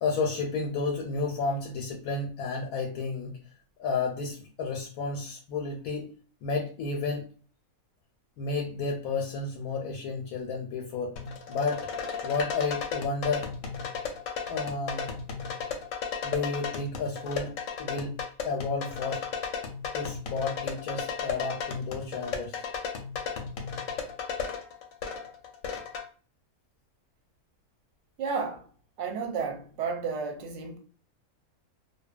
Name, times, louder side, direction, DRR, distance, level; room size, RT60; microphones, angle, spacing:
voice 1, 0.0-3.4 3.8-7.3 8.4-11.1 11.5-11.9 12.2-13.5 14.5-15.1 16.2-18.2 18.4-19.2 19.9-22.6, left 4 dB, 90° left, 1.1 m, -32 dB
sound 1, 11.2-26.0, left 6 dB, 70° left, 0.9 m, -35 dB
voice 2, 28.2-28.7 29.0-30.8, right 5 dB, 65° right, 0.8 m, -32 dB
2.6 x 2.2 x 2.4 m
omnidirectional pair, 1.5 m